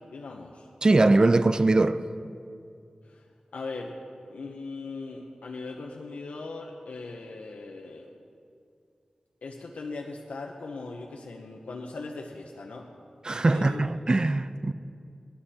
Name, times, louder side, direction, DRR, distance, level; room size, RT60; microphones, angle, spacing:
voice 1, 0.0-0.7 3.0-3.3 3.5-4.0 4.3-8.1 9.4-12.9 13.4-13.8, left 3 dB, 90° left, 0.9 m, -39 dB
voice 2, 0.8-2.0 13.2-14.7, right 2 dB, 35° right, 0.4 m, -21 dB
18.0 x 11.5 x 4.3 m
wide cardioid pair, 70°, 2 cm